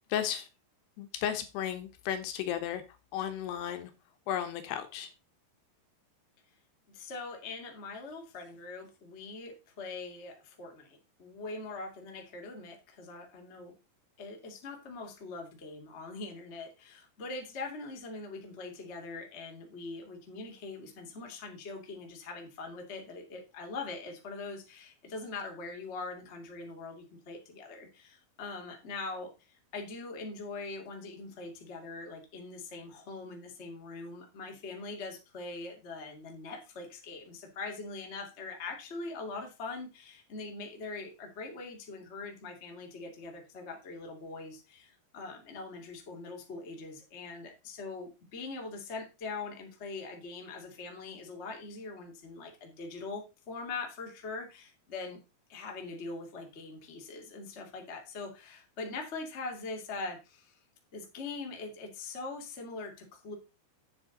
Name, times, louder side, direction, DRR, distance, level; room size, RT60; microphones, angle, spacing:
voice 1, 0.1-0.5 1.0-2.8 3.1-3.9 4.3-5.1, left 10 dB, 75° left, 9 dB, 2.9 m, -34 dB
voice 2, 6.9-13.7 14.2-55.2 55.5-60.5 60.9-63.3, left 3 dB, 25° left, 2 dB, 1.4 m, -42 dB
9.0 x 7.3 x 3.9 m, 0.27 s
omnidirectional pair, 5.0 m